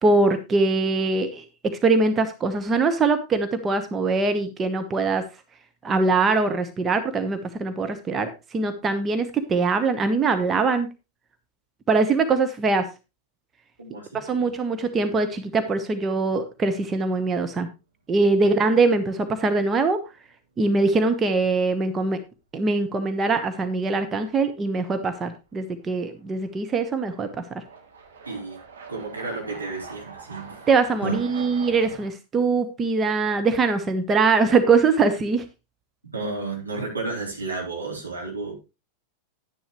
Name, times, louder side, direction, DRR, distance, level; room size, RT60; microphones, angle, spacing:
voice 1, 0.0-5.2 5.8-10.9 11.9-12.9 14.1-17.7 18.1-20.0 20.6-22.2 22.5-27.6 30.7-35.4, right 3 dB, 20° right, 8 dB, 1.1 m, -22 dB
voice 2, 13.8-14.5 18.4-18.5 28.3-28.6 28.9-30.6 31.0-31.2 36.1-38.5, right 3 dB, 80° right, -2 dB, 4.2 m, -32 dB
sound 1, 14.1-14.8 15.1-15.2 18.1-18.2 19.6-19.8 20.1-20.2 25.6-25.7 26.4-32.1, right 5 dB, 65° right, 2.8 m, -43 dB
10.5 x 10.0 x 3.2 m, 0.27 s
figure-of-eight pair, 90°, 0 cm